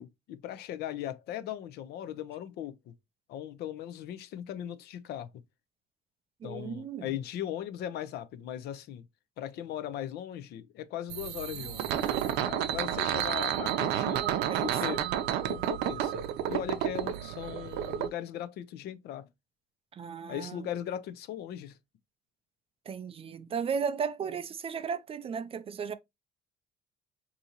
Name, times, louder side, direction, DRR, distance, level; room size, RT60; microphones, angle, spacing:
voice 1, 0.0-2.9 3.3-5.3 6.4-9.1 9.4-14.2 14.6-15.0 15.4-19.3 20.3-21.8, left 11 dB, 75° left, 0.5 m, -38 dB
voice 2, 6.4-7.1 14.0-15.2 19.9-20.7 22.9-25.9, right 6 dB, 35° right, 0.4 m, -36 dB
sound 1, 11.1-18.1, right 11 dB, 85° right, 0.5 m, -31 dB
3.7 x 2.8 x 2.8 m
cardioid pair, 110°, 17 cm